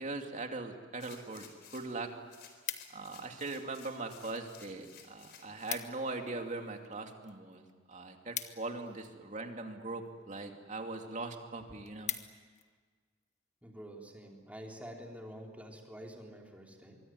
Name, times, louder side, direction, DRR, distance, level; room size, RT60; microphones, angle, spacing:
voice 1, 0.0-1.5 1.7-2.1 2.9-12.2, right 3 dB, 40° right, 4 dB, 2.6 m, -40 dB
sound 1, 1.0-2.0 2.3-5.8 6.3-6.4, left 7 dB, 55° left, 4.2 m, -56 dB
sound 2, 2.3-3.3 4.0-4.5 4.8-4.9 5.2-5.3 5.5-6.1 6.5-9.3 10.0-10.4 10.9-11.0 11.3-11.4 11.7-12.7 13.2-13.4, left 9 dB, 35° left, 1.5 m, -42 dB
voice 2, 13.6-17.0, equal, 10° right, 0 dB, 3.9 m, -48 dB
24.5 x 24.0 x 9.5 m, 1.5 s
head